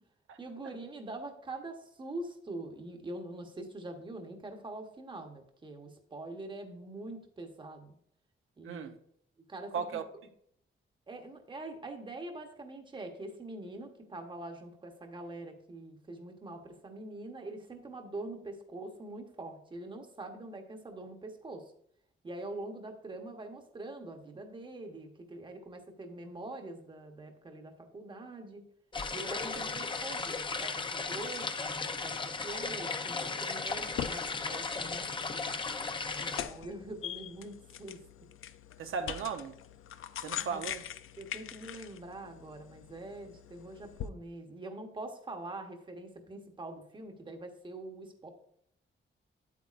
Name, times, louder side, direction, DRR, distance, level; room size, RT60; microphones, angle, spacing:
voice 1, 0.4-7.9 8.6-8.9 9.5-10.0 11.1-21.7 22.2-28.6 29.1-32.2 32.4-35.5 36.2-38.0 40.3-40.6 41.2-48.3, right 2 dB, 25° right, 1.0 m, -44 dB
voice 2, 9.7-10.0 38.8-39.5 40.2-40.8, right 6 dB, 85° right, 0.7 m, -36 dB
sound 1, 28.9-36.4, left 4 dB, 25° left, 0.5 m, -36 dB
sound 2, 33.7-44.1, left 10 dB, 80° left, 0.5 m, -43 dB
9.1 x 8.3 x 2.5 m
wide cardioid pair, 180°, 21 cm